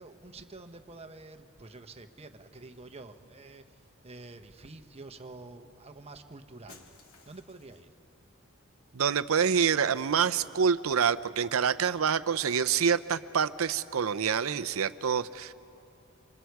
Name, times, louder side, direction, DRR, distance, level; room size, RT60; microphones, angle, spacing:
voice 1, 0.0-6.9 7.2-7.9, right 2 dB, 30° right, 8 dB, 1.0 m, -48 dB
Shatter, 6.7-8.0, left 4 dB, 75° left, 2.1 m, -56 dB
voice 2, 8.9-15.5, right 7 dB, 75° right, 13 dB, 0.6 m, -27 dB
27.5 x 26.5 x 4.7 m, 2.8 s
head